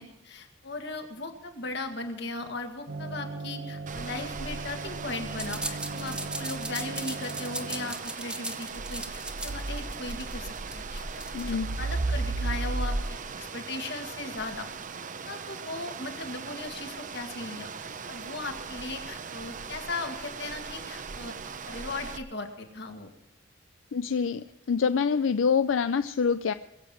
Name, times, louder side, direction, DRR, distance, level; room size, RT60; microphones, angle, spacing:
voice 1, 0.0-11.1 11.5-14.7 15.3-17.7 18.1-21.4 21.7-23.1, left 3 dB, 60° left, 5 dB, 2.1 m, -38 dB
sound 1, 2.9-7.9, right 3 dB, 75° right, 1.3 m, -39 dB
sound 2, 3.9-22.2, right 3 dB, 40° right, 0.7 m, -36 dB
sound 3, 5.4-11.5, right 1 dB, 5° right, 1.1 m, -37 dB
voice 2, 11.3-11.7 23.9-26.5, left 6 dB, 85° left, 12 dB, 0.4 m, -26 dB
21.5 x 7.9 x 7.8 m, 0.92 s
head